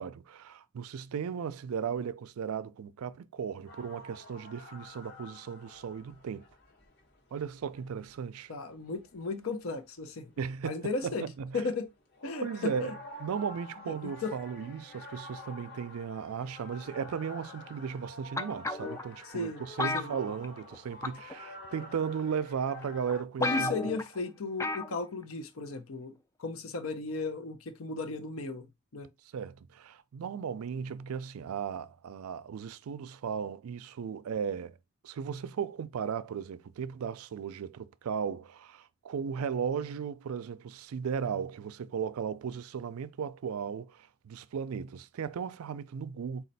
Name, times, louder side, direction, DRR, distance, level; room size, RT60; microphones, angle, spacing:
voice 1, 0.0-6.4 7.3-8.5 10.4-11.6 12.4-12.9 13.2-24.0 29.3-34.8 35.0-46.4, right 7 dB, 85° right, 0.4 m, -36 dB
sound 1, 3.7-10.3 10.8-11.2 11.6-23.2, left 2 dB, 50° left, 1.1 m, -49 dB
voice 2, 8.5-10.3 10.6-11.3 11.5-11.9 12.2-12.9 13.9-14.3 19.3-19.6 19.9-20.2 23.4-28.7 28.9-29.1, left 3 dB, 70° left, 0.6 m, -35 dB
sound 2, 18.4-19.0 19.8-20.7 21.0-21.3 22.2-22.3 22.8-22.9 23.1-23.2 23.4-24.1 24.6-24.9 25.2-25.3, left 3 dB, 15° left, 0.3 m, -32 dB
4.2 x 2.3 x 4.0 m
head